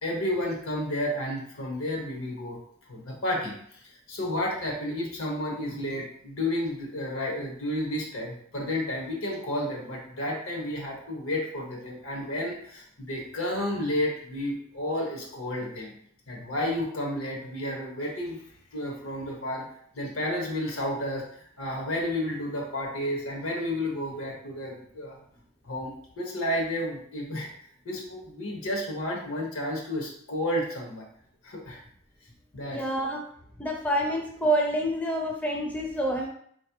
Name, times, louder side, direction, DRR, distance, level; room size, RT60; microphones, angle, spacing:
voice 1, 0.0-2.6 2.9-3.8 4.1-15.9 16.3-18.4 18.7-19.6 19.9-25.2 25.6-27.5 27.8-31.1 31.4-31.8 32.5-32.8, left 1 dB, 80° left, -1 dB, 1.2 m, -31 dB
voice 2, 32.7-33.3 33.6-36.3, right 1 dB, 5° left, 0 dB, 0.4 m, -27 dB
4.3 x 3.2 x 2.9 m, 0.64 s
head